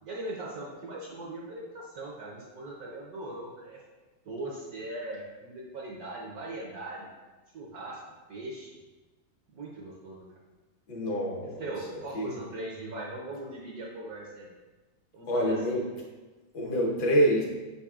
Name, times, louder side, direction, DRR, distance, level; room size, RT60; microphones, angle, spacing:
voice 1, 0.0-3.8 4.2-7.1 7.5-8.0 8.3-8.7 9.5-10.2 11.4-14.5 15.1-15.8, right 2 dB, 65° right, -3 dB, 1.0 m, -39 dB
voice 2, 10.9-11.7 12.1-12.3 15.3-15.8 16.5-17.4, equal, 65° left, -3 dB, 1.5 m, -26 dB
5.2 x 4.1 x 2.3 m, 1.2 s
omnidirectional pair, 2.1 m